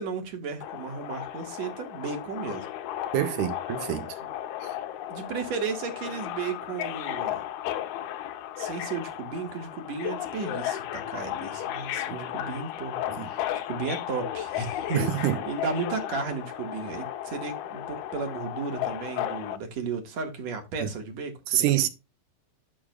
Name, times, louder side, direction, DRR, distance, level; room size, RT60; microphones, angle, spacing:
voice 1, 0.0-2.7 5.1-7.4 8.6-21.7, right 5 dB, 55° right, 2.5 m, -34 dB
Subway metro underground, 0.6-19.6, left 12 dB, 90° left, 2.8 m, -34 dB
voice 2, 3.1-4.2 4.6-4.7 12.1-12.3 13.2-13.3 14.9-15.4 20.8-20.9 21.5-21.9, right 12 dB, 75° right, 2.0 m, -27 dB
12.0 x 6.1 x 2.3 m
omnidirectional pair, 4.3 m